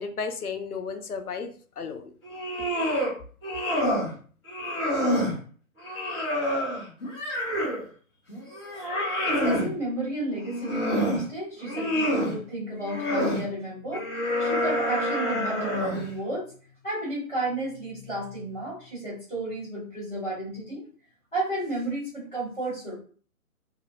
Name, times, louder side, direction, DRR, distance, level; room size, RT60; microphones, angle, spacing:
voice 1, 0.0-2.1, left 5 dB, 90° left, 8 dB, 0.6 m, -34 dB
sound 1, 2.2-3.1 3.4-4.1 4.5-5.3 5.8-7.8 8.3-9.7 10.3-11.2 11.6-12.3 12.8-13.4 13.9-16.1, equal, 20° left, 1.2 m, -27 dB
voice 2, 9.3-16.5 16.8-20.8 21.3-23.0, right 1 dB, ahead, -19 dB, 0.6 m, -32 dB
2.7 x 2.4 x 2.7 m, 0.43 s
figure-of-eight pair, 135°, 43 cm